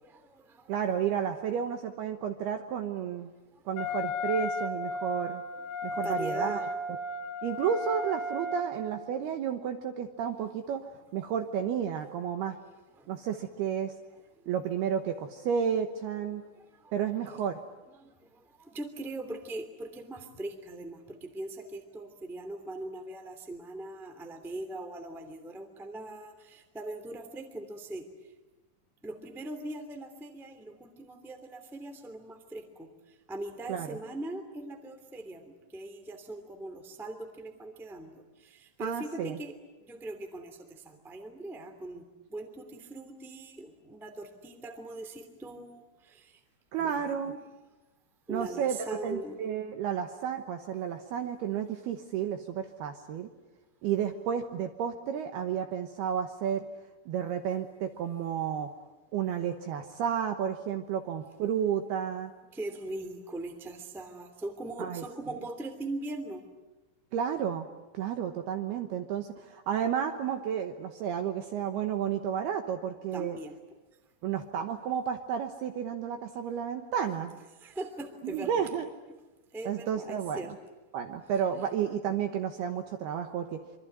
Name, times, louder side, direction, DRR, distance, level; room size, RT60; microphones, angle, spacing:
voice 1, 0.0-0.7 3.5-3.6 5.8-6.6 13.0-13.1 14.4-14.5 16.5-16.9 18.0-28.1 29.0-39.5 39.8-42.0 42.3-46.4 46.8-47.2 48.3-49.4 62.5-66.4 73.1-73.5 77.5-78.7 79.5-80.5, right 2 dB, ahead, 6 dB, 1.0 m, -41 dB
voice 2, 0.7-3.3 3.7-5.4 5.8-6.7 7.4-12.6 13.1-13.9 14.5-16.4 16.9-17.6 33.7-34.0 38.8-39.4 46.7-47.4 48.3-48.8 49.0-53.3 53.8-56.6 57.1-58.7 59.1-62.3 64.8-65.0 65.3-65.4 67.1-67.7 67.9-73.4 74.2-77.4 78.2-78.9 79.6-80.4 80.9-83.6, right 8 dB, 70° right, 6 dB, 2.5 m, -32 dB
Wind instrument woodwind instrument, 3.8-9.0, left 1 dB, 50° left, 3.9 m, -34 dB
26.0 x 24.5 x 9.3 m, 1.1 s
omnidirectional pair, 5.8 m